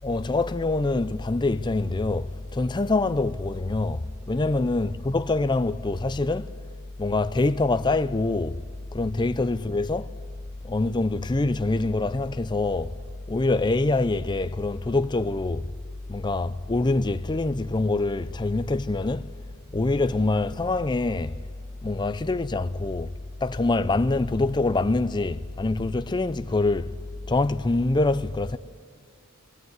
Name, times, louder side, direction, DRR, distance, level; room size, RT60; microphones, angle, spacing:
voice 1, 0.0-6.5 7.0-8.6 8.9-10.1 10.6-12.9 13.3-15.7 16.1-19.3 19.7-21.4 21.8-23.1 23.4-26.9 27.3-28.6, left 2 dB, 20° left, 0.5 m, -25 dB
21.0 x 16.5 x 9.5 m
head